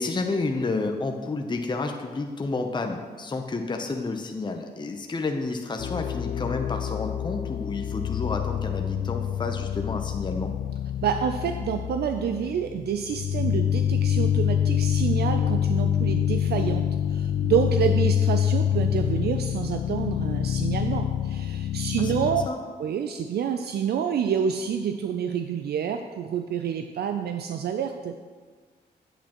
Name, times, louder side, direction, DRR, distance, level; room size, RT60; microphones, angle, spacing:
voice 1, 0.0-10.5 22.0-22.6, left 3 dB, 25° left, 4 dB, 0.7 m, -30 dB
sound 1, 5.8-22.5, left 9 dB, 65° left, 0.4 m, -26 dB
voice 2, 11.0-22.4 22.8-28.2, right 8 dB, 65° right, 6 dB, 0.4 m, -28 dB
8.3 x 8.1 x 3.0 m, 1.5 s
cardioid pair, 65°, 18 cm